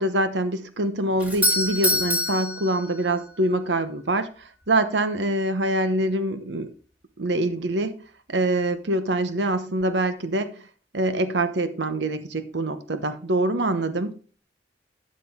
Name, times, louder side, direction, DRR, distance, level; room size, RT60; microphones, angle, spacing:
voice 1, 0.0-6.7 7.2-8.0 8.3-10.6 10.9-14.2, right 1 dB, 85° right, 1.0 m, -25 dB
Doorbell, 1.2-3.4, left 1 dB, 10° right, 2.0 m, -25 dB
12.0 x 7.7 x 3.6 m
head